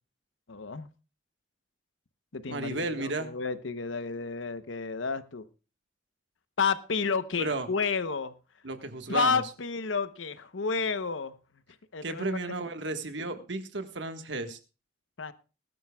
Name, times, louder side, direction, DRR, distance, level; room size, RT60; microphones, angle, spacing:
voice 1, 0.5-0.9 2.3-5.5 6.6-8.3 9.1-11.3 11.9-12.4 15.2-15.3, left 5 dB, 85° left, 12 dB, 0.9 m, -31 dB
voice 2, 2.5-3.3 7.4-7.7 8.6-9.4 12.0-14.6, right 2 dB, 70° right, 8 dB, 1.5 m, -33 dB
20.5 x 12.0 x 2.3 m, 0.32 s
head